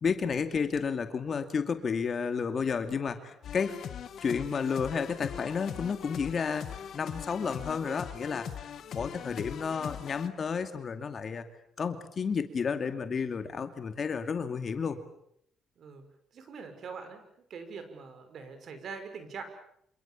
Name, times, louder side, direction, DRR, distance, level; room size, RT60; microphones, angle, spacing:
voice 1, 0.0-3.8 4.2-8.6 8.9-11.4 11.8-15.0, left 6 dB, 45° left, 8 dB, 2.4 m, -31 dB
sound 1, 3.4-10.3, left 9 dB, 65° left, 1.8 m, -41 dB
voice 2, 16.3-17.2 17.5-19.4, right 5 dB, 60° right, 8 dB, 5.9 m, -43 dB
27.5 x 27.0 x 7.2 m, 0.71 s
cardioid pair, 90°, 0 cm